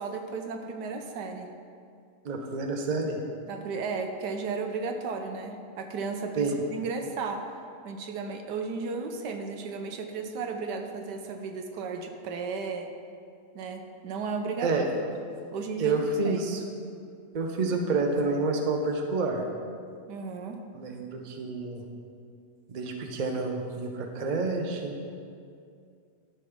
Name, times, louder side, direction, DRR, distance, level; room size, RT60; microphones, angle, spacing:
voice 1, 0.0-1.5 3.5-12.9 13.5-14.7 15.1-15.2 15.5-16.4 20.1-20.6, right 4 dB, 90° right, 4 dB, 1.4 m, -34 dB
voice 2, 2.2-3.2 6.4-6.6 14.6-14.9 15.8-16.6 17.3-19.4 20.7-21.8 22.7-24.9, right 3 dB, 40° right, 3 dB, 0.6 m, -29 dB
12.5 x 5.7 x 3.6 m, 2.3 s
omnidirectional pair, 1.8 m